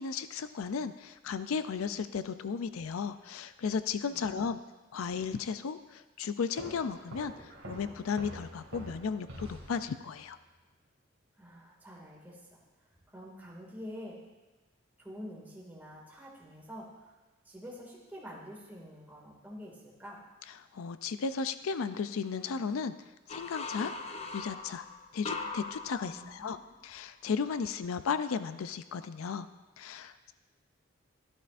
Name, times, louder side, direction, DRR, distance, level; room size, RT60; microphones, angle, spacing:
voice 1, 0.0-4.6 4.9-10.4 20.7-22.9 23.3-23.9 24.3-24.9 25.1-26.6 26.8-29.5 29.8-30.3, left 5 dB, 85° left, 12 dB, 0.4 m, -35 dB
sound 1, 6.6-10.3, right 1 dB, 80° right, 2.1 m, -46 dB
voice 2, 11.4-14.2 15.0-17.2 17.4-20.2 26.1-26.6, equal, 10° right, -4 dB, 2.1 m, -47 dB
sound 2, 23.3-26.9, left 3 dB, 30° left, 0.6 m, -40 dB
13.5 x 12.5 x 2.5 m, 1.2 s
head